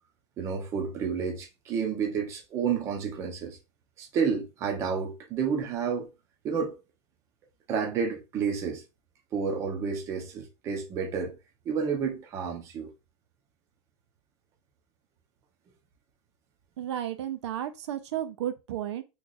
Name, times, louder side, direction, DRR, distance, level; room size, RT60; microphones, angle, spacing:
voice 1, 0.4-3.6 4.0-6.1 6.4-6.8 7.7-8.8 9.3-11.4 11.7-12.9, right 6 dB, 20° right, 0.6 m, -30 dB
voice 2, 16.8-19.0, right 11 dB, 70° right, 0.5 m, -33 dB
3.1 x 2.3 x 3.9 m
supercardioid pair, 175°, 15 cm